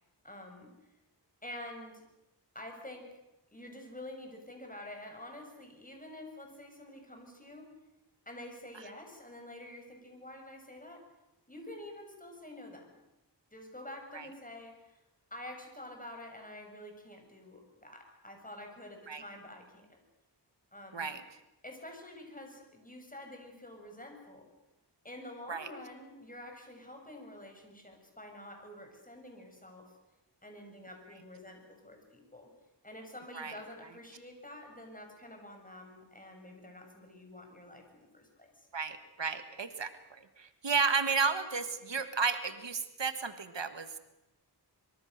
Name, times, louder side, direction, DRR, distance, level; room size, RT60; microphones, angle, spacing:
voice 1, 0.2-0.7 1.4-2.1 2.5-3.1 3.5-7.7 8.2-11.0 11.5-12.9 13.5-15.0 15.3-20.0 20.7-21.1 21.6-24.5 25.0-29.9 30.4-32.5 32.8-38.7, left 1 dB, 20° left, 3 dB, 6.8 m, -48 dB
voice 2, 38.7-39.9 40.4-43.9, right 5 dB, 80° right, 10 dB, 1.7 m, -32 dB
25.0 x 23.5 x 6.6 m, 0.93 s
wide cardioid pair, 60°, 43 cm